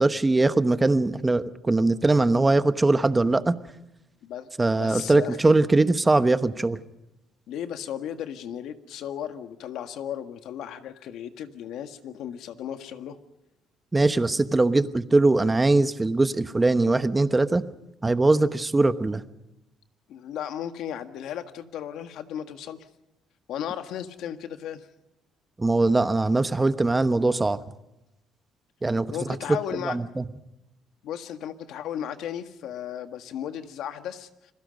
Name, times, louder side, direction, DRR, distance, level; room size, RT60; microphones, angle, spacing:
voice 1, 0.0-3.5 4.6-6.8 13.9-17.6 18.0-19.2 25.6-27.6 28.8-29.1 29.5-29.6 29.8-30.2, right 2 dB, 15° right, 11 dB, 1.0 m, -21 dB
voice 2, 4.8-5.4 7.5-13.2 20.1-22.8 23.5-24.9 29.1-30.0 31.0-34.3, left 10 dB, 75° left, 8 dB, 1.7 m, -35 dB
30.0 x 21.5 x 5.3 m, 0.91 s
cardioid pair, 130°, 0 cm